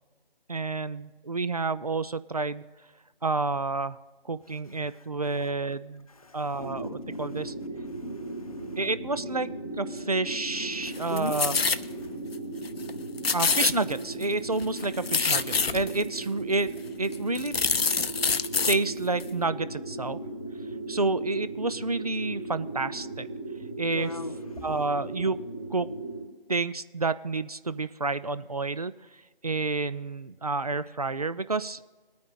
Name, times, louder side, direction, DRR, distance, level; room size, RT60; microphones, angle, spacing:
voice 1, 0.5-2.6 3.2-4.0 4.3-6.1 6.3-7.5 8.8-9.5 9.8-11.6 13.3-17.5 18.7-20.2 20.9-23.3 23.8-24.1 24.6-25.4 25.7-25.9 26.5-28.9 29.4-31.8, right 3 dB, 40° right, 14 dB, 0.4 m, -29 dB
sound 1, 6.6-26.2, right 2 dB, ahead, 0.9 m, -37 dB
voice 2, 7.9-8.8 11.1-11.3 12.0-12.2 23.9-24.7, left 3 dB, 40° left, 7 dB, 0.8 m, -39 dB
sound 2, 10.9-11.8 12.3-12.4 12.6-12.9 13.2-14.2 14.6-16.0 16.7-16.8 17.1-18.8 19.2-19.3, left 5 dB, 85° left, 0.6 m, -26 dB
21.5 x 9.3 x 2.5 m, 1.3 s
figure-of-eight pair, 160°, 29 cm